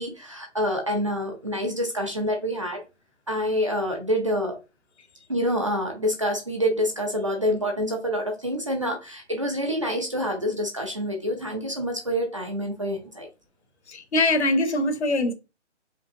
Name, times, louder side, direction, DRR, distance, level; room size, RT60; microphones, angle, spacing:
voice 1, 0.0-2.8 3.3-4.6 5.3-13.3, equal, 25° right, 0.5 m, -27 dB
voice 2, 13.9-15.3, left 2 dB, 65° left, 1.0 m, -23 dB
5.1 x 3.0 x 2.6 m
hypercardioid pair, 170°, 36 cm